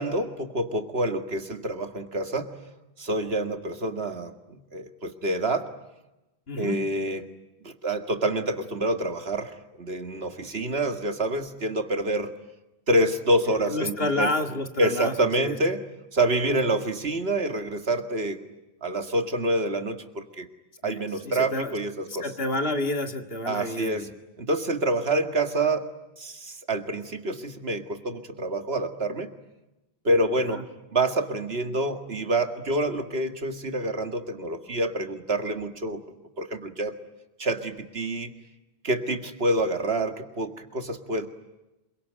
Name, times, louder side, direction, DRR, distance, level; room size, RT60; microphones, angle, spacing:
voice 1, 0.0-2.5 3.0-5.7 6.6-7.3 7.6-12.3 12.9-14.3 14.8-15.8 16.1-18.4 18.8-20.5 20.8-22.2 23.5-24.1 24.4-25.8 26.2-29.3 30.0-30.6 30.9-36.0 36.4-36.9 37.4-38.3 38.8-41.3, right 1 dB, 70° right, 7 dB, 2.2 m, -27 dB
voice 2, 6.5-6.8 13.7-15.6 20.8-21.8 22.1-24.1 30.5-30.6, left 2 dB, 65° left, 6 dB, 2.3 m, -29 dB
27.0 x 23.5 x 9.3 m, 0.97 s
omnidirectional pair, 1.1 m